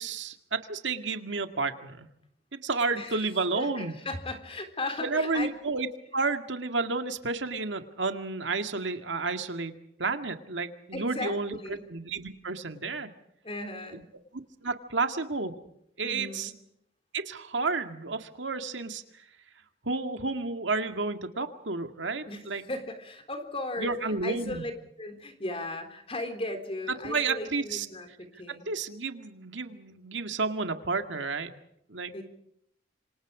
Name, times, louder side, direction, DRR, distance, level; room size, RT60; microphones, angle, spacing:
voice 1, 0.0-2.1 2.5-4.0 5.0-5.9 6.1-9.7 10.0-13.1 13.9-14.0 14.6-15.5 16.0-16.5 17.1-19.3 19.8-22.6 23.8-24.7 27.0-27.9 28.7-31.5 31.9-32.1, right 3 dB, 75° right, 7 dB, 2.0 m, -31 dB
voice 2, 2.9-3.3 3.6-5.5 10.9-11.8 13.4-14.1 16.0-16.6 22.3-23.9 24.2-24.7 25.0-28.7 32.1-32.2, left 2 dB, 30° left, 7 dB, 3.7 m, -37 dB
27.5 x 25.5 x 5.0 m, 0.75 s
head